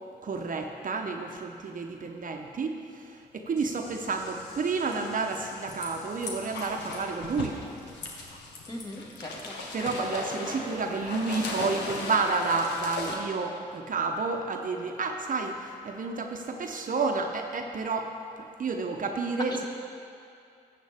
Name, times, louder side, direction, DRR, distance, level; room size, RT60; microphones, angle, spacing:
voice 1, 0.2-7.6 9.7-18.1 18.6-19.6, right 4 dB, 50° right, 3 dB, 0.9 m, -30 dB
Dog splashing in a lake, 3.6-13.2, left 2 dB, 75° left, 1.2 m, -38 dB
voice 2, 8.7-9.6 19.5-19.7, equal, 25° left, -1 dB, 1.8 m, -39 dB
13.0 x 7.6 x 3.6 m, 2.5 s
supercardioid pair, 45°, 18 cm